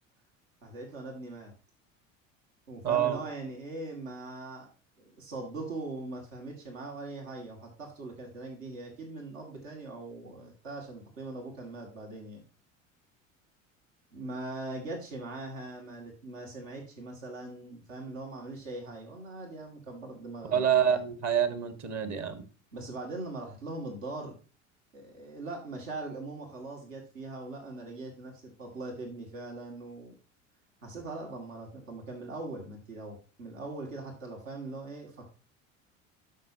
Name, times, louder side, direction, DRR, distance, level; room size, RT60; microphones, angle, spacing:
voice 1, 0.6-1.5 2.7-4.7 5.0-12.4 14.1-21.0 22.7-24.4 24.9-30.2 30.8-35.3, right 2 dB, 75° right, 2 dB, 2.2 m, -41 dB
voice 2, 2.8-3.2 20.5-22.4, right 9 dB, 45° right, 10 dB, 1.6 m, -27 dB
12.5 x 5.6 x 2.8 m, 0.34 s
figure-of-eight pair, 70°, 39 cm